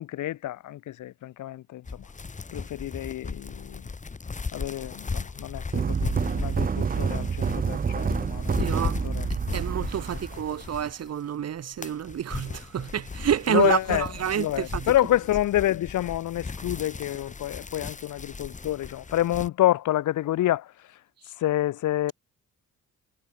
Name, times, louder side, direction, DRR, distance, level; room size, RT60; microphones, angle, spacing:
voice 1, 0.0-2.1 2.5-3.9 4.5-9.3 10.5-10.6 13.5-20.7 21.4-22.1, left 14 dB, 75° left, 1.8 m, -28 dB
sound 1, 1.8-11.2 11.6-19.5, left 4 dB, 25° left, 1.8 m, -36 dB
sound 2, 5.7-10.9, right 6 dB, 30° right, 0.8 m, -28 dB
voice 2, 8.6-8.9 9.5-14.9, right 9 dB, 55° right, 2.0 m, -28 dB
cardioid pair, 90°, 30 cm